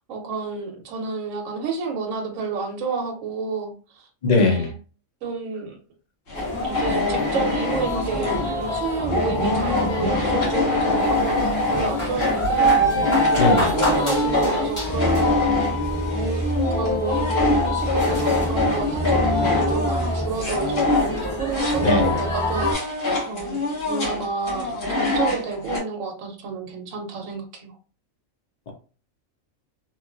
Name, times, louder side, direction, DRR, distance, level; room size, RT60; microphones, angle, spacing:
voice 1, 0.1-4.1 4.4-4.7 5.2-5.8 6.6-8.3 8.6-12.7 13.3-15.8 16.1-22.7 23.3-27.7, right 5 dB, 70° right, 2 dB, 1.0 m, -30 dB
voice 2, 4.2-4.7 13.3-13.7 21.8-22.1, left 3 dB, 40° left, 2 dB, 0.6 m, -19 dB
sound 1, 6.3-8.6 9.1-22.3 22.5-25.8, left 2 dB, 65° left, 1.7 m, -24 dB
sound 2, 6.3-22.7, equal, 25° left, 1.2 m, -25 dB
2.9 x 2.5 x 2.5 m, 0.36 s
omnidirectional pair, 1.5 m